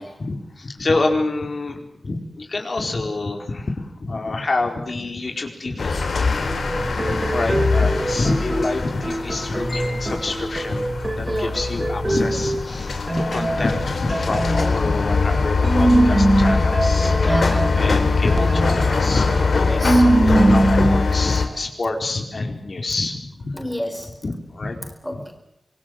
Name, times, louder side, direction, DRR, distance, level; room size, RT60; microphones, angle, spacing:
voice 1, 0.2-6.6 6.9-17.4 17.8-23.6 24.2-25.2, left 2 dB, 55° left, 3 dB, 4.5 m, -27 dB
sound 1, 5.8-21.5, left 4 dB, 80° left, 3.6 m, -22 dB
sound 2, 6.5-12.7 13.1-21.1, right 1 dB, 25° right, 2.4 m, -22 dB
voice 2, 11.2-11.5 17.0-17.7 19.6-20.0 23.5-24.1 25.0-25.4, equal, 5° left, 5 dB, 4.4 m, -30 dB
26.0 x 23.0 x 7.8 m, 0.81 s
wide cardioid pair, 110°, 0 cm